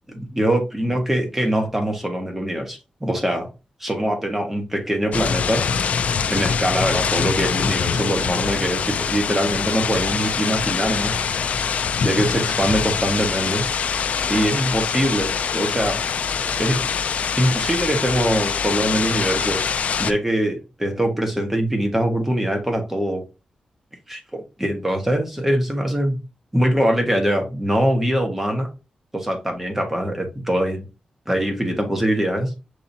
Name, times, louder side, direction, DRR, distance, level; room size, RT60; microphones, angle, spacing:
voice 1, 0.1-3.5 3.8-5.6 6.3-11.2 12.0-13.6 14.3-16.0 16.6-16.9 17.4-19.6 20.0-23.2 24.1-26.2 26.5-28.7 29.1-30.8 31.3-32.5, right 1 dB, 10° right, 3 dB, 1.2 m, -23 dB
sound 1, 5.1-20.1, left 6 dB, 65° left, 0.4 m, -24 dB
6.7 x 2.8 x 2.7 m, 0.29 s
wide cardioid pair, 120°, 3 cm